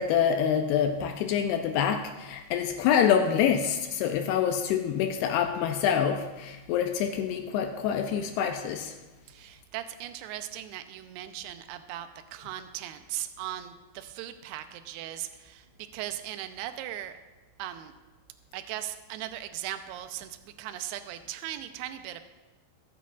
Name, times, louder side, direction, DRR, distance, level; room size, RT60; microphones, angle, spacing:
voice 1, 0.0-9.0, left 8 dB, 80° left, 5 dB, 2.5 m, -26 dB
voice 2, 9.3-15.7 15.9-17.1 17.6-17.9 18.5-22.2, right 12 dB, 80° right, 9 dB, 2.5 m, -38 dB
22.0 x 8.3 x 2.4 m, 1.1 s
omnidirectional pair, 5.0 m